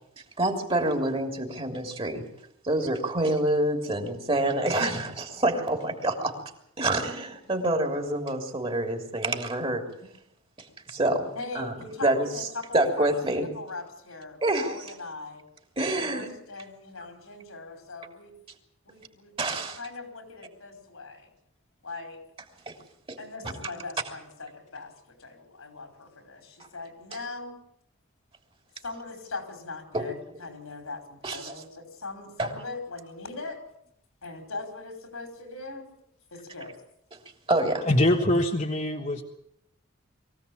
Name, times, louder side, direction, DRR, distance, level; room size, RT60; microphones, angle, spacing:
voice 1, 0.4-2.2 2.6-6.4 6.8-10.1 10.6-11.7 12.0-12.3 12.7-13.5 14.4-14.8 15.8-16.3 19.4-19.8 22.7-22.8 23.1-23.2 29.9-30.1 31.2-31.5 32.4-32.5 37.1-37.2 37.5-37.9, right 1 dB, 25° right, 5 dB, 3.1 m, -27 dB
voice 2, 11.3-15.4 15.9-18.3 18.9-21.3 21.8-22.2 23.2-27.6 28.8-33.6 34.2-36.0 36.3-36.8, left 3 dB, 90° left, 5 dB, 5.2 m, -40 dB
voice 3, 37.9-39.2, left 1 dB, 35° left, 1 dB, 1.5 m, -23 dB
23.5 x 16.5 x 8.7 m, 0.73 s
head